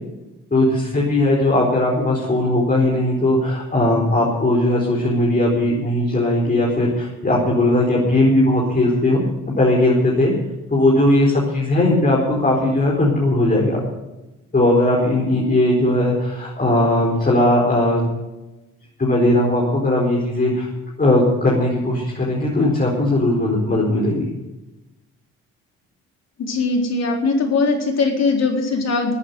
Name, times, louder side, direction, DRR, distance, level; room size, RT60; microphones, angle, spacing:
voice 1, 0.5-9.2 9.6-10.3 10.7-13.8 14.5-18.0 19.0-20.7 21.0-24.2, left 1 dB, 30° left, -3 dB, 4.6 m, -18 dB
voice 2, 26.4-29.1, left 3 dB, 60° left, 2 dB, 4.1 m, -20 dB
14.0 x 9.1 x 9.6 m, 1.0 s
hypercardioid pair, 50°, 30 cm